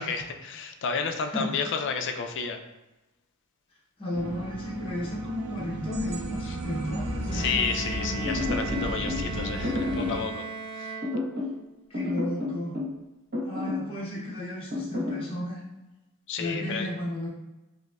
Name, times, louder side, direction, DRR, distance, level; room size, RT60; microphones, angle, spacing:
voice 1, 0.0-2.6 6.5-6.6 7.3-10.5 10.8-10.9 16.3-16.9, left 5 dB, 55° left, 5 dB, 0.4 m, -31 dB
voice 2, 1.2-1.7 4.0-7.7 11.9-12.8 13.4-15.6 16.4-17.3, left 1 dB, 25° left, -6 dB, 0.7 m, -33 dB
sound 1, 4.1-10.3, right 1 dB, 85° right, 0.5 m, -34 dB
Bowed string instrument, 7.3-11.7, right 5 dB, 20° right, 0.3 m, -38 dB
sound 2, 8.2-9.2 9.6-10.2 11.0-11.6 11.9-13.0 13.3-13.9 14.7-15.2, left 2 dB, 45° right, 1.1 m, -30 dB
5.1 x 2.0 x 2.3 m, 1.0 s
head